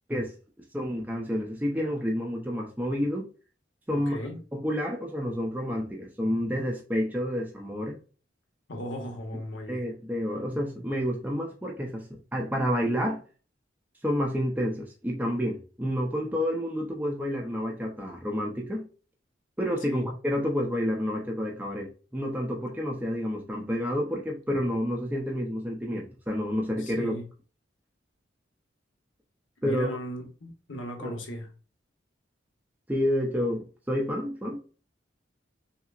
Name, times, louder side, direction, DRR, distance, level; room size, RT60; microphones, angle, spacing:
voice 1, 0.7-3.3 3.9-4.2 4.5-8.0 9.7-13.2 14.0-18.9 19.6-27.1 29.6-29.9 31.0-31.1 32.9-34.7, equal, 10° right, 0.5 m, -29 dB
voice 2, 3.9-4.4 8.7-9.9 19.9-20.1 26.8-27.2 29.6-31.5, equal, 85° left, 1.0 m, -37 dB
5.6 x 2.0 x 2.4 m
head